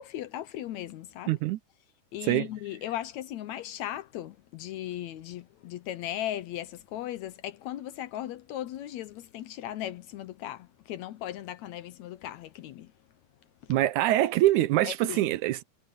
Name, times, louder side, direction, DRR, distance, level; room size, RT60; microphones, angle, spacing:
voice 1, 0.0-1.4 2.1-12.9 13.6-13.7 14.8-15.4, left 12 dB, 75° left, 1.9 m, -37 dB
voice 2, 1.3-1.6 2.3-2.5 13.7-15.6, right 15 dB, 80° right, 2.0 m, -24 dB
omnidirectional pair, 3.7 m